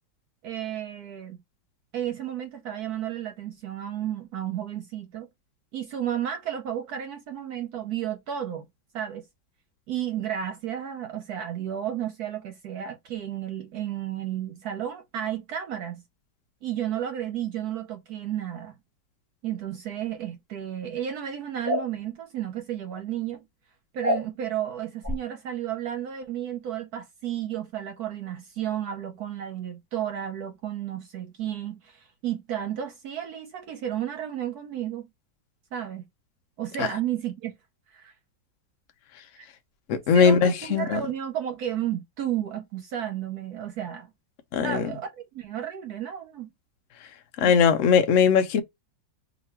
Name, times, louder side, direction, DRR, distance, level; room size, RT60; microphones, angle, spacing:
voice 1, 0.4-1.4 1.9-5.3 5.7-8.7 8.9-9.3 9.9-16.0 16.6-18.7 19.4-23.5 23.9-35.1 35.7-36.1 36.6-37.5 37.9-38.1 39.4-39.5 40.1-44.1 44.6-46.5 47.4-47.6, right 10 dB, 65° right, 1.0 m, -32 dB
sound 1, 21.6-21.9 24.0-24.2 25.0-25.2, left 1 dB, 10° right, 0.8 m, -25 dB
voice 2, 39.9-41.0 44.5-44.9 47.4-48.6, left 6 dB, 80° left, 0.6 m, -20 dB
3.0 x 2.5 x 4.3 m
omnidirectional pair, 2.0 m